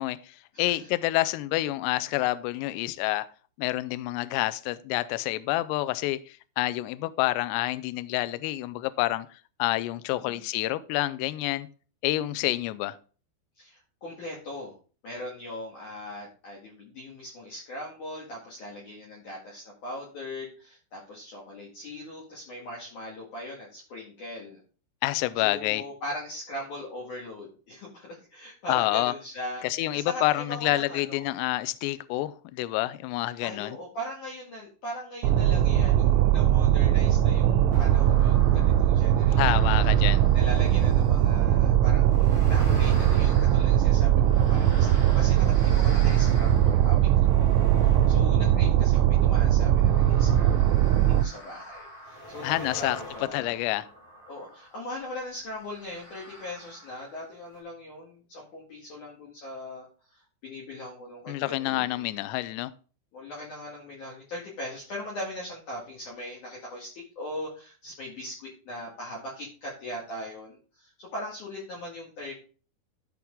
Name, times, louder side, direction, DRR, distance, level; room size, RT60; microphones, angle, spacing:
voice 1, 0.0-3.3 3.6-11.7 12.0-13.0 25.0-25.8 28.7-29.1 29.6-33.8 39.4-40.2 52.4-53.0 53.3-53.9 61.3-62.7, left 17 dB, 85° left, 2.4 m, -28 dB
voice 2, 0.5-0.9 10.1-10.4 13.6-14.7 15.0-24.6 25.4-31.4 33.4-39.8 40.3-53.6 54.3-62.1 63.1-72.3, left 1 dB, 50° left, 2.9 m, -40 dB
sound 1, 35.2-51.2, right 11 dB, 85° right, 2.8 m, -21 dB
sound 2, 37.7-41.4 42.0-54.8 55.6-57.2 57.5-57.6, equal, 30° left, 1.7 m, -44 dB
12.5 x 4.6 x 3.7 m
omnidirectional pair, 5.3 m